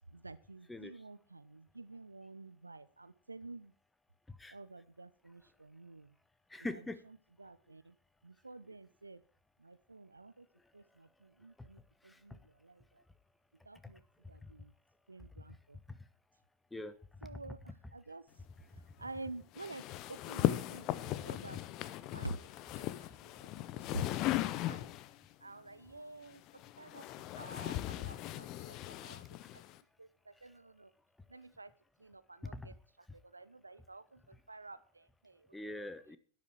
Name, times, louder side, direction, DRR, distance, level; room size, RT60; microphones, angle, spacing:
voice 1, 0.1-3.7 4.5-6.1 7.4-7.9 8.2-9.2 9.6-10.4 10.7-11.8 12.0-12.7 13.7-14.0 14.3-14.7 15.1-15.8 17.2-17.6 17.9-18.2 19.0-19.8 20.1-21.6 22.1-22.4 22.8-22.9 23.9-24.2 24.5-24.8 25.4-26.4 26.8-28.8 29.0-29.2 30.0-30.1 30.4-30.9 31.3-31.7 32.0-32.7 33.3-34.0 34.5-35.4, right 2 dB, 80° right, 16 dB, 0.7 m, -49 dB
voice 2, 0.7-1.0 4.3-4.6 6.5-7.0 11.6-11.7 12.0-12.4 13.8-13.9 14.4-14.5 15.9-16.0 16.7-17.0 17.2-17.9 19.0-19.1 29.4-29.6 32.4-32.8 35.5-36.2, left 2 dB, 5° left, 13 dB, 1.1 m, -44 dB
sound 1, 19.6-25.2 26.2-29.8, left 14 dB, 40° left, 0.8 m, -38 dB
12.0 x 11.0 x 4.7 m, 0.42 s
figure-of-eight pair, 90°, 0 cm